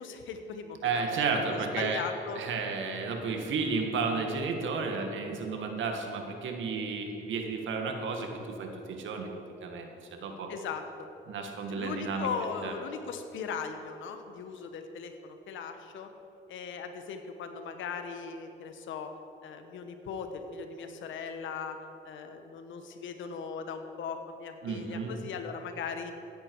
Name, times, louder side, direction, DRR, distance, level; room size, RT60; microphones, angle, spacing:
voice 1, 0.0-1.2 1.5-2.4 10.5-11.1 11.7-16.1 16.5-19.1 19.4-21.8 22.0-26.1, left 5 dB, 80° left, 7 dB, 1.3 m, -38 dB
voice 2, 0.8-2.0 2.4-9.3 9.6-10.5 11.3-12.3 12.6-12.7 24.6-25.1, right 4 dB, 75° right, 3 dB, 1.8 m, -32 dB
15.5 x 10.5 x 4.7 m, 2.9 s
cardioid pair, 90°, 20 cm